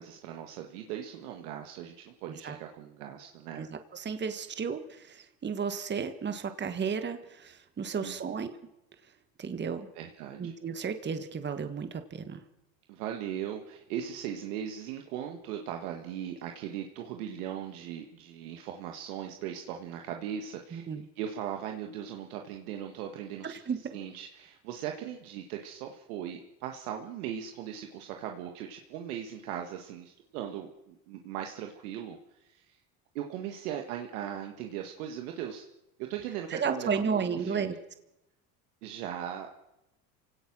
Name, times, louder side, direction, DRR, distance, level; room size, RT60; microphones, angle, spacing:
voice 1, 0.0-3.7 8.0-8.2 9.9-10.5 12.9-32.8 33.1-35.6 36.1-37.7 38.8-39.5, right 9 dB, 90° right, 4 dB, 1.8 m, -39 dB
voice 2, 3.6-8.5 9.4-9.9 10.4-12.4 20.7-21.0 23.4-24.0 36.5-37.8, right 6 dB, 25° right, 9 dB, 1.6 m, -33 dB
27.5 x 17.5 x 6.2 m, 0.91 s
supercardioid pair, 115°, 43 cm